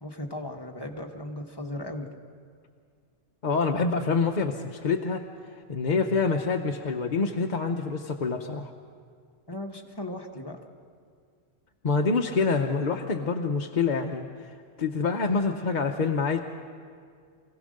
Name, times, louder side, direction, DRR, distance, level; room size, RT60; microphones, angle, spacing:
voice 1, 0.0-2.1 9.5-10.6, left 1 dB, 20° left, 2 dB, 1.2 m, -37 dB
voice 2, 3.4-5.3 5.7-8.7 11.8-14.3 14.8-16.4, left 4 dB, 45° left, 3 dB, 0.8 m, -26 dB
24.0 x 16.5 x 6.5 m, 2.1 s
omnidirectional pair, 1.2 m